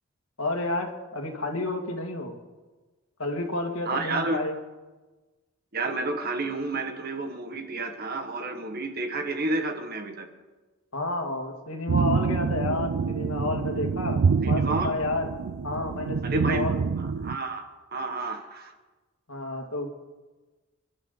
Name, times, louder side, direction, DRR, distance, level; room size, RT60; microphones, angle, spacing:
voice 1, 0.4-2.3 3.2-4.5 10.9-15.3 15.6-16.8 19.3-19.9, left 2 dB, 85° left, 2 dB, 2.2 m, -30 dB
voice 2, 3.8-4.4 5.7-10.3 14.4-14.9 16.2-16.7 17.0-18.7, right 2 dB, 50° right, 6 dB, 1.7 m, -30 dB
sound 1, 11.9-17.4, right 5 dB, 70° right, 0.4 m, -26 dB
27.5 x 12.0 x 4.0 m, 1.2 s
head